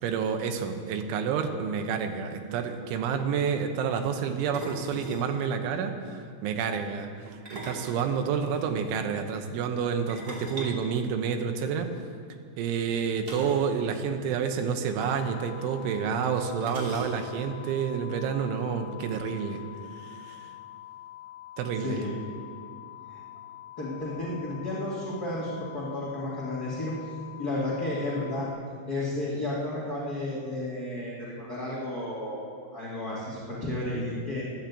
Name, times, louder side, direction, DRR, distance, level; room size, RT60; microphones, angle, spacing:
voice 1, 0.0-11.9 12.6-19.6 20.0-20.5 21.6-22.0, right 6 dB, 80° right, 5 dB, 3.4 m, -29 dB
sound 1, 2.2-2.3 2.5-2.7 4.5-5.3 7.3-8.7 10.1-11.7 13.2-13.7 14.0-14.1 14.4-14.6 15.6-15.7 16.6-17.5, right 2 dB, 30° right, 2.0 m, -40 dB
sound 2, 15.0-28.5, left 13 dB, 65° left, 3.3 m, -46 dB
voice 2, 21.8-22.1 23.1-23.2 23.8-26.9 27.4-28.5 28.9-32.4 32.7-34.4, left 1 dB, 35° left, -6 dB, 1.5 m, -32 dB
12.5 x 12.0 x 8.4 m, 2.3 s
omnidirectional pair, 5.6 m